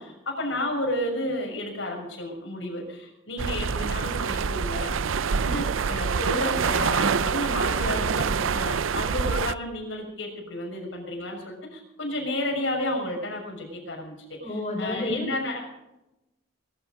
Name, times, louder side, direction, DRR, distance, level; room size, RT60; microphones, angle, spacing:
voice 1, 0.0-4.9 5.3-14.1 14.4-15.6, left 1 dB, 70° left, 1 dB, 6.3 m, -31 dB
sound 1, 3.4-9.5, right 6 dB, 90° right, 0.5 m, -26 dB
voice 2, 14.4-15.3, left 2 dB, 35° left, 4 dB, 4.7 m, -29 dB
21.5 x 12.0 x 5.3 m, 0.92 s
head